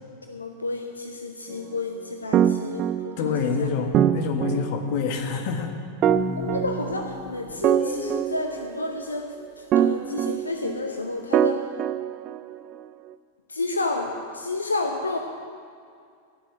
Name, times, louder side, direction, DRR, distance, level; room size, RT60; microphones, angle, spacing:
voice 1, 0.3-3.7 6.3-11.7 13.5-15.2, left 2 dB, 80° left, 4 dB, 0.8 m, -31 dB
sound 1, 2.3-3.5 3.9-5.1 6.0-7.2 7.6-9.0 9.7-10.9 11.3-12.7, right 10 dB, 35° right, 0.4 m, -24 dB
voice 2, 3.2-5.7, left 5 dB, 45° left, 6 dB, 1.3 m, -26 dB
sound 2, 6.0-8.2, left 1 dB, 15° left, 3.3 m, -32 dB
16.5 x 6.6 x 7.9 m, 2.3 s
figure-of-eight pair, 90°, 0 cm